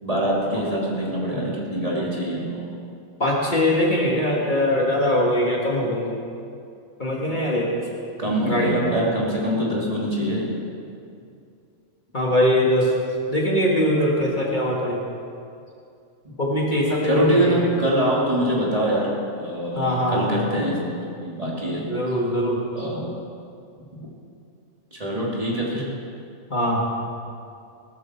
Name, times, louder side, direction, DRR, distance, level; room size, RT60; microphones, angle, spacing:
voice 1, 0.0-2.7 8.2-10.5 16.2-16.3 17.0-19.1 19.4-20.9 21.2-21.9 22.7-23.2 23.9-24.0 24.9-25.9, right 1 dB, 30° right, -5 dB, 2.9 m, -24 dB
voice 2, 3.2-6.2 7.0-7.8 8.4-9.0 12.1-12.9 13.3-15.0 16.4-17.6 19.7-20.5 21.9-22.6 26.5-26.9, left 1 dB, 35° left, -3 dB, 2.1 m, -22 dB
18.0 x 13.0 x 4.5 m, 2.5 s
omnidirectional pair, 1.3 m